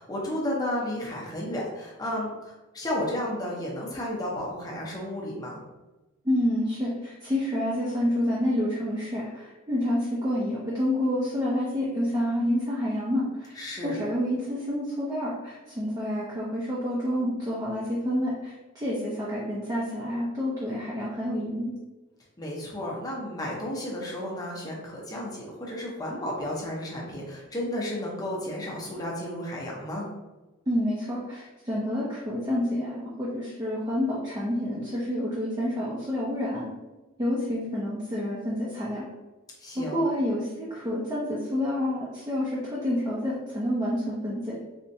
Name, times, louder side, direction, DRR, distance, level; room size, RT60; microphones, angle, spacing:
voice 1, 0.0-5.6 13.5-14.0 22.4-30.1 39.6-40.0, left 1 dB, 20° left, -4 dB, 0.7 m, -33 dB
voice 2, 6.2-13.5 13.8-21.7 30.7-36.6 37.2-39.0 39.8-44.6, left 1 dB, 20° right, -6 dB, 0.6 m, -28 dB
4.2 x 2.4 x 2.7 m, 1.1 s
head